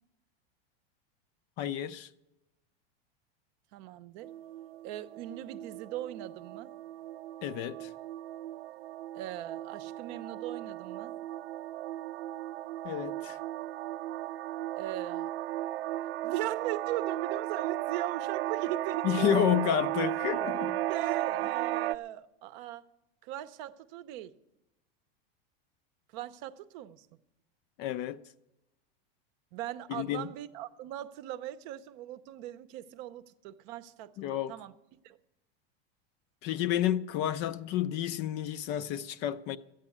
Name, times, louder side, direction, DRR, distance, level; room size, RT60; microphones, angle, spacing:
voice 1, 1.6-2.1 7.4-7.9 12.8-13.4 19.0-20.8 27.8-28.2 29.9-30.3 34.2-34.5 36.4-39.6, left 10 dB, 35° left, 0.5 m, -30 dB
voice 2, 3.7-4.3 4.8-6.7 9.1-11.2 14.8-15.3 16.2-19.3 20.9-22.8 23.2-24.3 26.1-27.1 29.5-34.1 34.5-34.7 35.0-35.2, right 13 dB, 50° right, 0.7 m, -39 dB
sound 1, 4.2-22.0, right 14 dB, 85° right, 0.5 m, -35 dB
13.0 x 8.9 x 8.4 m
supercardioid pair, 150°, 30 cm